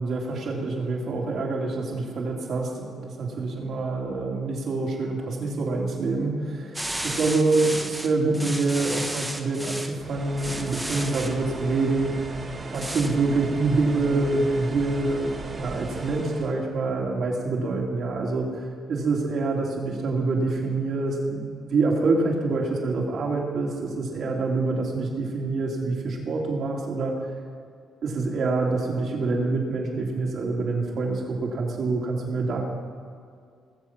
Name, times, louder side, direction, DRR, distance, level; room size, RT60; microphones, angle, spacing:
voice 1, 0.0-12.1 12.7-18.5 18.9-21.4 21.7-27.2 28.0-32.6, right 3 dB, 60° right, -1 dB, 3.1 m, -26 dB
sound 1, 6.7-9.9 10.4-11.3 12.7-13.1, right 1 dB, 10° right, 1.3 m, -33 dB
sound 2, 10.0-16.5, right 2 dB, 40° right, 2.1 m, -36 dB
19.5 x 7.5 x 6.0 m, 2.2 s
cardioid pair, 90°, 0 cm